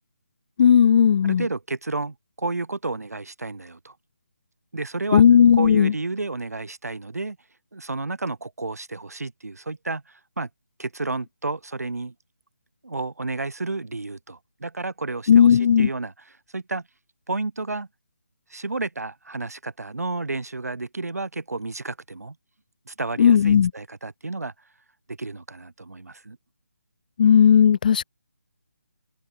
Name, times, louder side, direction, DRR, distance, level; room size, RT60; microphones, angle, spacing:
voice 1, 0.6-1.4 5.1-5.9 15.3-15.9 23.2-23.7 27.2-28.0, left 8 dB, 30° left, 0.4 m, -15 dB
voice 2, 1.2-3.9 4.7-5.2 5.5-7.4 7.7-10.0 10.4-10.5 10.8-12.1 12.8-16.1 16.5-16.8 17.3-17.9 18.5-22.3 22.9-24.5 25.2-26.4, right 3 dB, 75° right, 6.6 m, -31 dB
open air
figure-of-eight pair, 155°, 9 cm